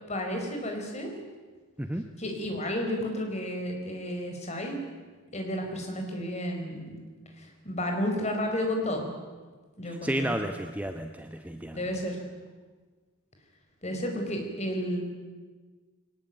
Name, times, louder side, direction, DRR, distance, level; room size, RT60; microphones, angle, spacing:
voice 1, 0.1-1.1 2.2-4.8 5.3-6.9 7.4-9.1 9.8-10.3 11.7-12.2 13.8-15.0, equal, 30° left, 3 dB, 4.5 m, -32 dB
voice 2, 10.0-11.8, right 1 dB, 5° right, 6 dB, 0.9 m, -32 dB
22.0 x 19.0 x 9.1 m, 1.4 s
head